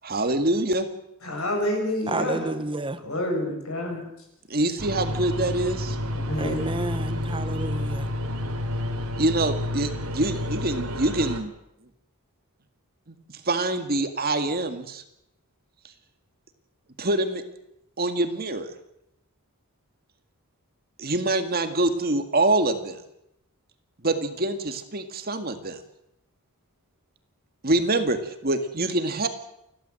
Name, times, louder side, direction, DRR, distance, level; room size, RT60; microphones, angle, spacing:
voice 1, 0.0-0.9 4.5-6.0 9.2-11.5 13.5-15.0 17.0-17.4 18.0-18.7 21.0-23.0 24.0-25.8 27.6-29.3, right 2 dB, 45° right, 8 dB, 1.9 m, -25 dB
voice 2, 1.2-2.5 3.0-4.1 6.1-6.6, left 1 dB, 70° left, 2 dB, 7.3 m, -28 dB
voice 3, 2.1-3.0 6.4-8.1, right 2 dB, 25° right, 12 dB, 0.9 m, -30 dB
sound 1, 4.8-11.4, left 1 dB, 80° right, 3.2 m, -30 dB
30.0 x 12.5 x 7.8 m, 0.83 s
head